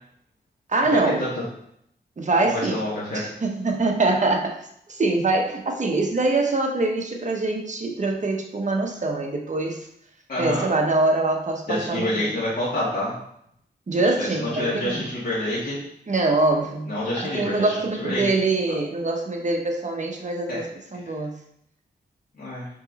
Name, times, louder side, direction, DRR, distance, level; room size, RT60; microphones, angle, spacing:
voice 1, 0.7-1.2 2.2-2.8 3.1-4.5 4.9-9.9 10.4-12.3 13.9-15.0 16.1-20.7 20.9-21.3, right 2 dB, 40° right, 1 dB, 1.1 m, -24 dB
voice 2, 2.4-3.3 10.3-10.7 11.7-13.1 14.0-15.8 16.9-18.2 18.7-18.8 20.5-20.6 22.3-22.7, left 1 dB, 50° left, -10 dB, 2.3 m, -27 dB
5.3 x 5.1 x 4.1 m, 0.72 s
wide cardioid pair, 100°, 18 cm